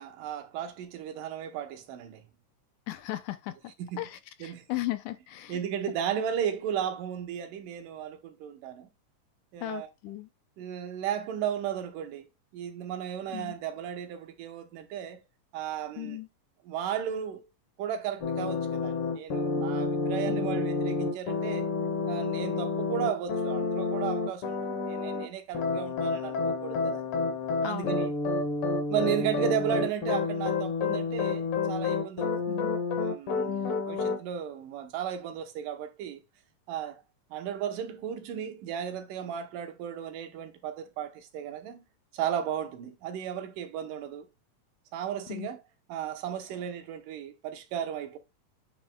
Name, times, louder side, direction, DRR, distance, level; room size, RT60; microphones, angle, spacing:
voice 1, 0.0-2.2 3.8-4.1 4.4-4.6 5.5-8.9 9.5-9.9 10.6-15.2 15.5-16.2 16.6-17.5 17.8-21.7 22.1-27.0 27.6-28.1 28.9-32.5 33.0-36.2 36.7-37.0 37.3-41.8 42.1-44.3 44.9-45.6 45.9-48.2, right 9 dB, 85° right, 2.5 m, -35 dB
voice 2, 2.9-3.5 4.0-5.6 9.6-10.3 13.3-13.6 16.0-16.3 20.3-20.6 27.6-28.0 32.5-32.7 33.5-33.8 45.3-45.5, left 16 dB, 80° left, 2.0 m, -36 dB
sound 1, 18.2-25.3 25.5-34.2, left 4 dB, 60° left, 1.5 m, -29 dB
8.9 x 3.1 x 3.6 m
omnidirectional pair, 3.8 m